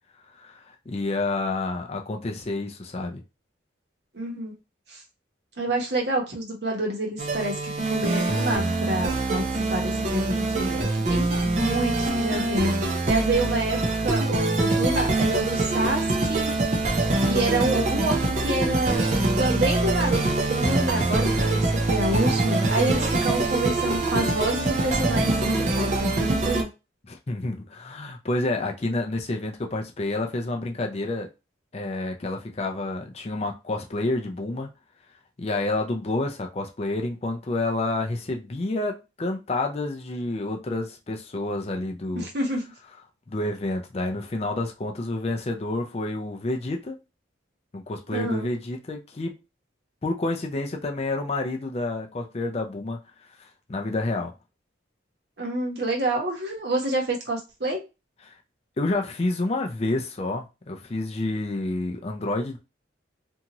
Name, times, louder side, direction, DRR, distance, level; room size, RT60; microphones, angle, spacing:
voice 1, 0.3-3.2 27.1-31.3 31.7-34.7 35.4-42.3 43.3-47.0 47.7-49.4 50.0-53.0 53.4-54.3 58.3-58.4 58.8-62.6, left 2 dB, 30° left, 0.4 m, -29 dB
voice 2, 4.1-4.5 4.9-5.0 5.6-9.4 9.7-16.5 17.3-19.0 19.4-20.2 20.5-26.7 42.1-42.6 48.1-48.5 55.4-57.8, right 2 dB, 60° right, 1.0 m, -28 dB
sound 1, 7.2-26.6, right 2 dB, 35° right, 0.5 m, -24 dB
2.7 x 2.4 x 2.9 m
head